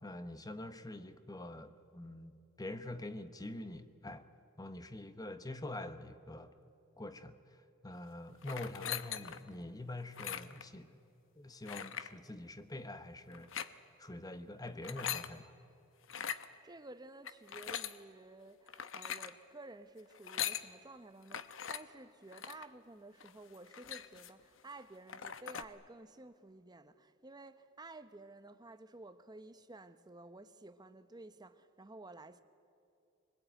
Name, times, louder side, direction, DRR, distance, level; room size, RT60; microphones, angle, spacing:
voice 1, 0.0-4.3 4.6-6.5 7.0-11.0 11.4-13.6 14.0-15.5, left 1 dB, 20° left, 1.0 m, -45 dB
sound 1, 8.4-9.5 10.1-10.7 11.7-12.1 13.3-13.7 14.7-15.3 16.0-16.5 17.3-18.0 18.7-19.3 20.1-20.7 21.3-21.8 22.3-22.7 23.2-23.3 23.5-24.4 24.8-24.9 25.1-25.7, left 9 dB, 70° left, 0.9 m, -41 dB
voice 2, 16.6-32.4, right 2 dB, 20° right, 1.0 m, -53 dB
25.0 x 20.0 x 9.1 m
head